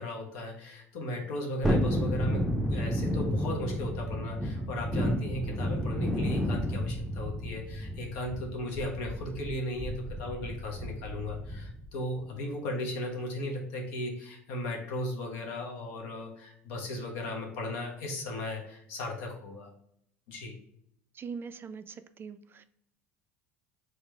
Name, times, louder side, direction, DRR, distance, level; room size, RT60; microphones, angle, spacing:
voice 1, 0.0-19.7 20.3-20.5, left 1 dB, 65° left, 1 dB, 1.2 m, -36 dB
Thunderstorm, 1.6-11.9 12.2-12.3, equal, 5° right, 0.7 m, -31 dB
voice 2, 21.1-22.6, right 5 dB, 30° right, 12 dB, 0.3 m, -42 dB
4.6 x 3.2 x 3.2 m, 0.72 s
hypercardioid pair, 70°, 7 cm